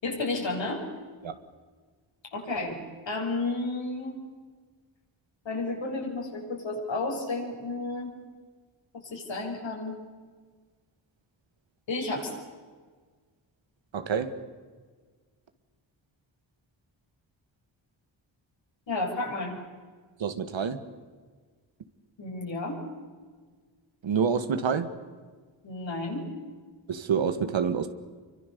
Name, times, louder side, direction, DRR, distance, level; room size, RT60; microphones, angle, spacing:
voice 1, 0.0-0.9 2.3-2.8 3.1-4.2 5.5-8.1 9.1-10.0 11.9-12.3 18.9-19.5 22.2-22.8 25.6-26.2, left 2 dB, 70° left, 0 dB, 6.9 m, -32 dB
voice 2, 13.9-14.4 20.2-20.8 24.0-24.9 26.9-27.9, right 6 dB, 75° right, 9 dB, 2.0 m, -27 dB
27.5 x 24.0 x 7.0 m, 1.5 s
cardioid pair, 70°, 46 cm